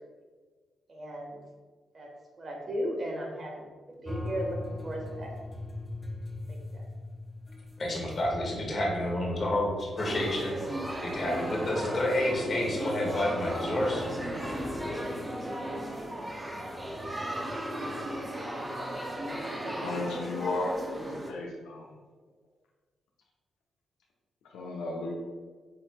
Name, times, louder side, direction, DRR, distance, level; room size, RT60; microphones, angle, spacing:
voice 1, 0.9-1.4 1.9-2.1 2.4-5.3 6.7-6.8, equal, 45° right, -1 dB, 1.3 m, -36 dB
sound 1, 4.0-18.3, left 1 dB, 10° left, 0.6 m, -43 dB
voice 2, 7.8-14.0, left 1 dB, 45° left, -1 dB, 1.4 m, -30 dB
sound 2, 10.0-21.3, right 1 dB, 20° right, 0.8 m, -35 dB
voice 3, 19.7-20.7 21.3-21.9 24.5-25.1, left 2 dB, 85° left, -1 dB, 0.7 m, -34 dB
7.5 x 2.9 x 2.2 m, 1.4 s
supercardioid pair, 55°, 0 cm